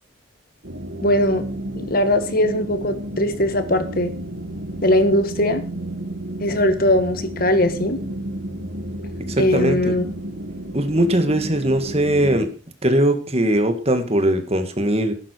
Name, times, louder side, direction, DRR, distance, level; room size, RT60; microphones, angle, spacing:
sound 1, 0.6-12.4, right 1 dB, 60° right, 2.4 m, -32 dB
voice 1, 1.0-1.4 1.7-4.1 4.8-5.6 6.4-8.0 9.4-10.0, left 1 dB, 45° left, 10 dB, 1.7 m, -20 dB
voice 2, 9.2-9.9 10.7-12.5 12.8-15.1, right 1 dB, 30° right, 9 dB, 2.0 m, -20 dB
15.0 x 12.0 x 4.7 m, 0.34 s
head